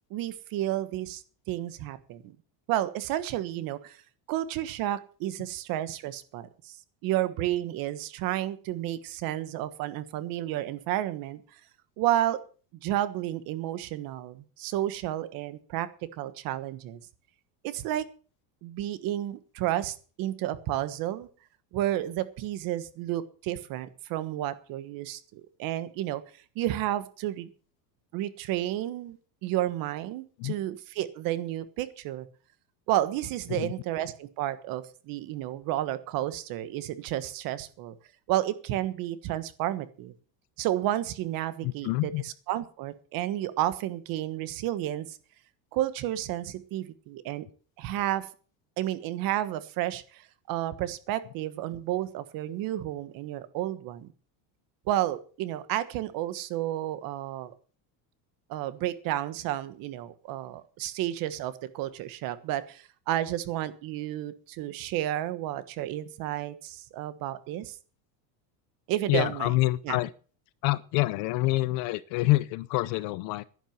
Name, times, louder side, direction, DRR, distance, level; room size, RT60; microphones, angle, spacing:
voice 1, 0.1-1.2 1.5-2.3 2.7-4.0 4.3-6.8 7.0-11.6 12.0-12.4 12.8-17.0 17.6-18.1 18.6-21.3 21.7-26.2 26.5-27.5 28.1-32.3 32.9-37.9 38.3-40.1 40.6-45.2 45.7-47.5 47.8-48.3 48.8-54.1 54.9-57.5 58.5-67.8 68.9-69.5 69.8-70.0, right 13 dB, 45° right, 1.4 m, -31 dB
voice 2, 41.6-42.2 69.1-70.1 70.6-73.4, left 20 dB, 45° left, 0.6 m, -27 dB
11.0 x 11.0 x 7.2 m
cardioid pair, 165°, 49 cm